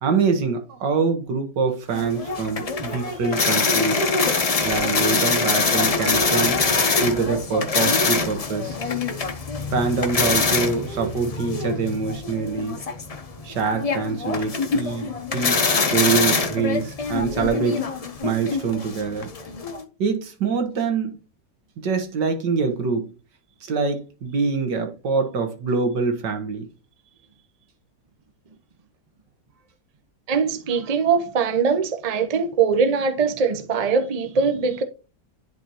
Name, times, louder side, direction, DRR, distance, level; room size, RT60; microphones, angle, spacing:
voice 1, 0.0-4.1 4.6-6.6 7.0-8.8 9.7-12.8 13.4-17.8 18.2-19.3 20.0-21.2 21.8-23.1 23.7-26.7, right 5 dB, 90° right, 1.9 m, -25 dB
sound 1, 1.9-19.8, left 4 dB, 45° left, 0.4 m, -24 dB
voice 2, 30.3-34.8, right 5 dB, 40° right, 0.6 m, -22 dB
10.5 x 4.2 x 2.9 m
omnidirectional pair, 1.8 m